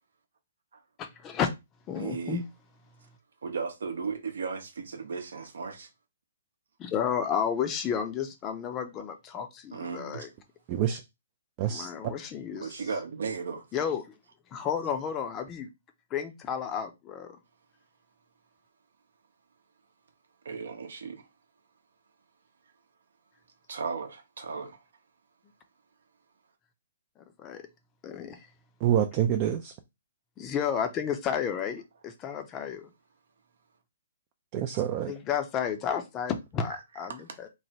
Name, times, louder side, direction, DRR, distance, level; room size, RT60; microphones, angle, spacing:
voice 1, 1.0-1.5 1.9-2.4 6.8-10.3 11.7-12.7 13.7-14.1 14.5-15.7 16.1-17.4 27.4-27.6 28.0-28.4 30.4-32.9 35.1-37.5, left 8 dB, 25° left, 0.5 m, -32 dB
voice 2, 2.0-2.4 3.4-5.9 9.7-10.3 12.6-13.7 20.4-21.2 23.7-24.8 34.7-34.8 36.7-36.8 37.1-37.2, right 5 dB, 75° right, 0.7 m, -35 dB
voice 3, 10.7-11.0 11.6-11.9 28.8-29.7 34.5-35.1, right 10 dB, 35° right, 0.3 m, -26 dB
3.1 x 2.1 x 2.8 m
hypercardioid pair, 135°, 0 cm